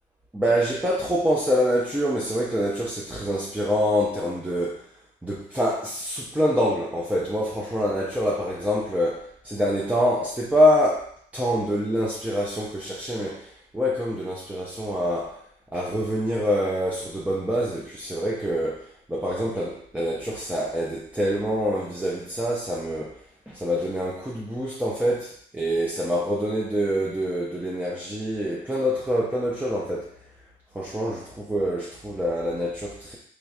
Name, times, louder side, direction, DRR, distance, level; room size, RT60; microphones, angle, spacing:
voice 1, 0.3-4.8 5.2-11.1 11.3-15.4 15.7-23.2 23.5-30.1 30.7-33.2, equal, 5° right, -5 dB, 0.5 m, -25 dB
3.3 x 3.1 x 2.4 m, 0.62 s
cardioid pair, 90°, 21 cm